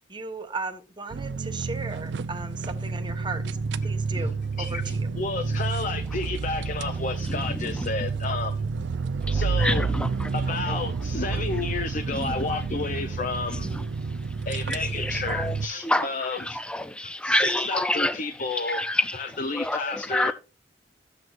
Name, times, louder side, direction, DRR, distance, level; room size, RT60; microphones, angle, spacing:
voice 1, 0.1-3.5 3.8-5.1, right 3 dB, 25° right, 1.0 m, -36 dB
sound 1, 1.1-15.7, right 4 dB, 70° right, 0.4 m, -30 dB
voice 2, 4.1-8.9 9.3-9.9 10.3-13.8 14.4-16.6 17.2-18.8 19.1-20.3, left 4 dB, 45° left, 0.6 m, -31 dB
voice 3, 7.3-7.9 9.3-10.3 10.7-10.8 12.1-12.3 13.6-13.8 14.7-16.1 16.4-18.2 18.5-19.2 19.5-20.3, left 1 dB, 5° left, 0.4 m, -28 dB
12.5 x 7.9 x 2.5 m
head